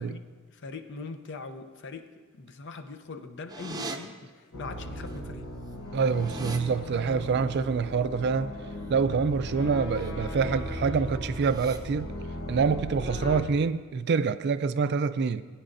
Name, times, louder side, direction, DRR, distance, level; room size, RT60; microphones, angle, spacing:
voice 1, 0.0-5.5, left 4 dB, 60° left, 0.7 m, -42 dB
sound 1, 3.5-4.0 5.2-5.3 5.5-6.6 9.8-10.1 10.5-10.8 11.2-11.8, right 3 dB, 20° right, 0.7 m, -40 dB
sound 2, 4.5-13.4, left 1 dB, 75° left, 1.1 m, -37 dB
voice 2, 5.9-8.5 8.9-12.1 12.5-15.4, right 5 dB, 50° right, 0.4 m, -26 dB
19.0 x 9.1 x 2.6 m
head